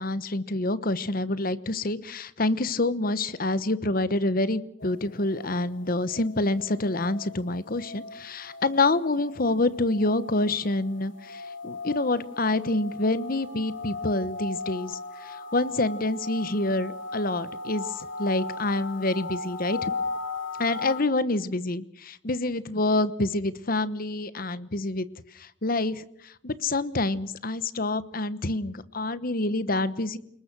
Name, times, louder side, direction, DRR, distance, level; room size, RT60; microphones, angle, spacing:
voice 1, 0.0-15.0 15.2-19.9 20.6-25.1 25.6-26.0 26.4-30.2, left 2 dB, 50° left, 15 dB, 1.2 m, -27 dB
sound 1, 4.8-21.0, left 3 dB, 75° left, 3.0 m, -38 dB
29.0 x 20.0 x 6.2 m, 0.70 s
head